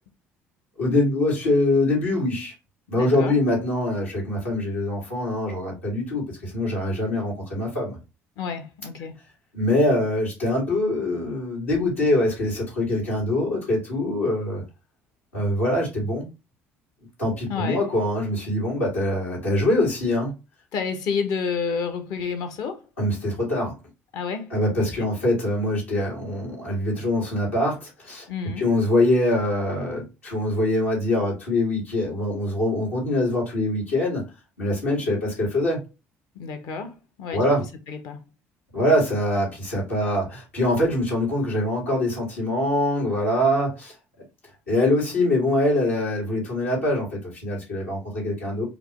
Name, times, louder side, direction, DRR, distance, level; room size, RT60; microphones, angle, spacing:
voice 1, 0.8-2.5 2.9-8.0 9.5-14.6 15.3-16.3 17.2-20.3 23.0-23.7 24.5-28.3 28.6-34.2 34.6-35.8 37.3-37.6 38.7-43.9 44.7-48.6, left 1 dB, 90° left, 2.0 m, -24 dB
voice 2, 2.9-3.4 8.4-9.2 17.5-17.9 20.7-22.9 24.1-25.1 28.3-28.7 36.3-37.5 37.9-38.2, left 5 dB, 60° left, 0.8 m, -30 dB
4.9 x 2.0 x 3.0 m
hypercardioid pair, 55°, 7 cm